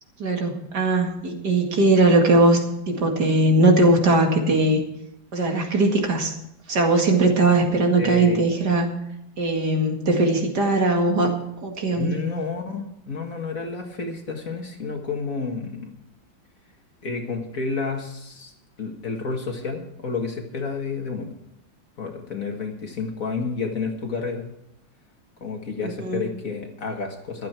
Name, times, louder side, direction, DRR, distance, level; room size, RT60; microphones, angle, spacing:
voice 1, 0.2-4.8 5.3-6.3 6.7-8.9 9.4-11.3 11.6-12.2 25.8-26.2, right 2 dB, 60° right, 2 dB, 2.7 m, -20 dB
voice 2, 8.0-8.6 11.9-15.9 17.0-18.5 18.8-21.3 22.0-24.5 25.4-27.5, left 4 dB, 45° left, 3 dB, 2.2 m, -30 dB
15.0 x 12.0 x 4.5 m, 0.79 s
omnidirectional pair, 2.0 m